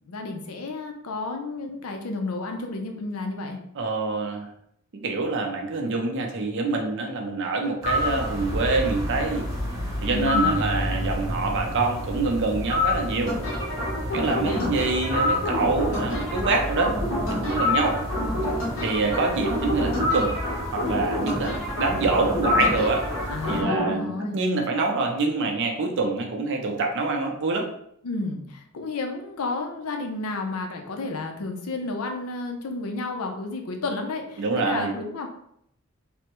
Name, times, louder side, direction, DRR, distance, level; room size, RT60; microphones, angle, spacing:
voice 1, 0.1-3.6 10.1-10.6 14.1-14.8 23.3-24.4 28.0-35.3, left 3 dB, 75° left, 3 dB, 0.5 m, -31 dB
voice 2, 3.8-4.5 4.9-9.4 10.0-13.4 14.1-16.9 17.3-18.0 18.8-20.3 20.7-27.7 34.4-34.9, right 3 dB, 55° right, 2 dB, 0.5 m, -26 dB
sound 1, 7.8-23.6, left 2 dB, 15° right, 0.7 m, -29 dB
sound 2, 8.4-17.0, left 1 dB, 25° left, 0.8 m, -38 dB
sound 3, 13.3-23.9, equal, 60° left, 1.2 m, -29 dB
3.3 x 2.1 x 2.9 m, 0.72 s
head